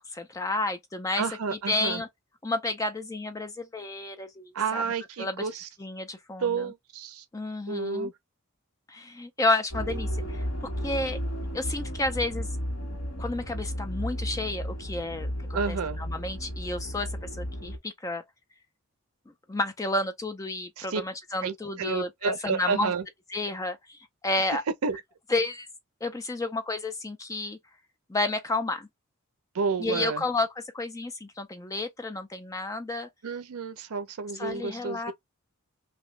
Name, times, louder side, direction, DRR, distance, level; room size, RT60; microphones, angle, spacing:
voice 1, 0.1-2.1 2.4-4.8 5.2-5.5 5.8-6.7 7.3-8.1 8.9-11.2 11.5-12.5 13.2-18.2 19.5-22.9 23.3-24.6 25.3-25.7 26.0-27.6 28.1-28.9 29.8-33.1 34.4-35.1, left 2 dB, 15° left, 0.3 m, -31 dB
voice 2, 1.2-2.0 4.5-5.7 6.4-7.2 7.7-8.1 15.5-16.0 20.8-21.0 21.4-23.0 24.8-25.0 29.5-30.2 33.2-35.1, right 5 dB, 80° right, 0.5 m, -30 dB
sound 1, 9.7-17.8, equal, 70° left, 1.4 m, -33 dB
2.9 x 2.6 x 3.1 m
head